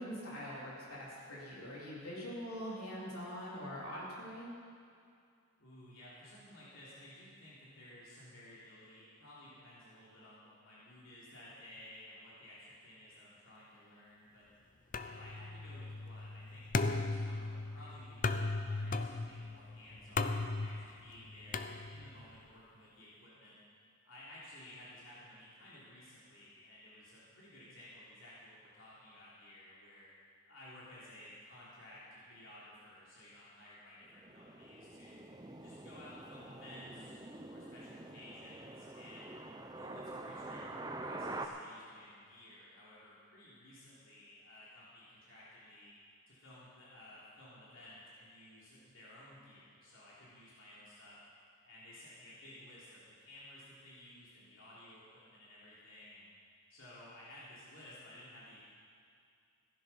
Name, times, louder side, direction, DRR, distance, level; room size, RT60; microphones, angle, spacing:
voice 1, 0.0-4.5, equal, 85° left, -6 dB, 3.9 m, -43 dB
voice 2, 5.6-14.5 15.0-21.6 21.9-23.6 24.0-30.1 30.5-35.2 35.6-39.4 39.7-45.9 46.3-51.2 51.6-56.3 56.7-58.7, left 1 dB, 60° left, -8 dB, 3.4 m, -55 dB
sound 1, 14.9-22.3, left 3 dB, 35° left, 0.5 m, -37 dB
sound 2, 34.0-41.5, right 2 dB, 20° right, 0.6 m, -46 dB
16.0 x 11.0 x 5.7 m, 2.3 s
head